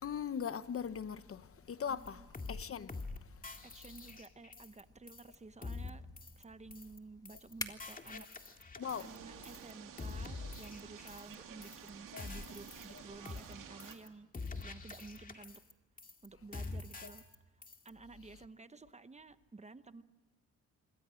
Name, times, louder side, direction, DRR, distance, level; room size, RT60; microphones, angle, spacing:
voice 1, 0.0-3.0 8.1-8.2 8.7-9.1 12.1-12.2 17.0-17.1, left 7 dB, 45° left, 0.8 m, -40 dB
sound 1, 1.4-13.3, left 2 dB, 10° left, 1.8 m, -55 dB
voice 2, 1.9-2.3 3.6-6.1 6.4-8.7 9.0-14.3 14.6-15.6 16.2-17.2 17.8-20.0, right 3 dB, 20° right, 0.9 m, -53 dB
sound 2, 2.1-2.2 2.3-2.6 2.9-3.2 3.4-4.8 5.1-5.3 5.6-5.9 6.2-6.4 6.7-7.0 7.2-7.5 7.8-9.2 9.4-9.7 10.0-11.3 11.6-11.9 12.2-13.0 13.2-13.5 13.8-14.1 14.3-15.7 16.0-16.3 16.5-17.3 17.6-17.9, left 3 dB, 25° left, 2.2 m, -45 dB
sound 3, 8.8-14.0, right 8 dB, 90° right, 2.6 m, -52 dB
27.5 x 22.5 x 6.3 m
cardioid pair, 105°, 31 cm